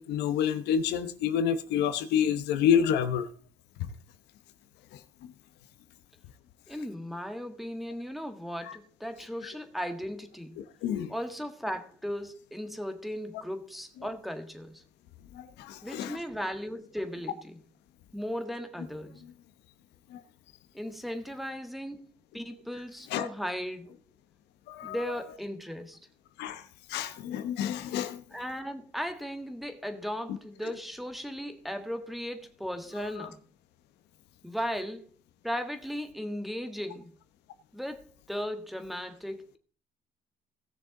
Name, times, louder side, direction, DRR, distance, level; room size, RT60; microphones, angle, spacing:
voice 1, 0.0-3.3 3.8-3.9 10.6-11.1 15.4-16.2 23.1-23.3 24.7-25.0 26.4-26.6 26.9-28.2 33.2-33.3, left 8 dB, 85° left, 1.0 m, -28 dB
voice 2, 6.7-10.6 11.1-14.8 15.8-17.6 18.1-19.3 20.7-23.9 24.8-26.0 28.3-33.4 34.4-35.1 35.4-37.2 37.7-39.6, equal, ahead, 1.5 m, -37 dB
17.5 x 6.6 x 3.8 m
cardioid pair, 110°, 17 cm